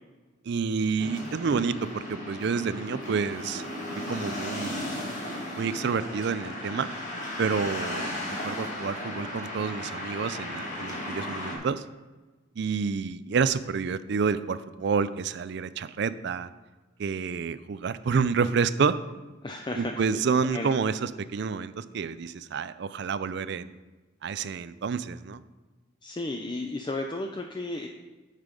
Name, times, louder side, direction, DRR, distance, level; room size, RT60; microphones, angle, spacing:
voice 1, 0.5-3.7 4.1-5.0 5.6-6.9 7.4-11.8 12.6-16.5 17.0-19.0 19.8-23.8 24.2-25.4, right 5 dB, 60° right, 15 dB, 0.4 m, -29 dB
sound 1, 1.0-11.6, left 1 dB, 40° left, 2.1 m, -35 dB
voice 2, 19.4-20.2 20.5-20.7 26.0-27.9, left 2 dB, 25° left, 3 dB, 0.4 m, -33 dB
8.0 x 5.8 x 5.2 m, 1.2 s
head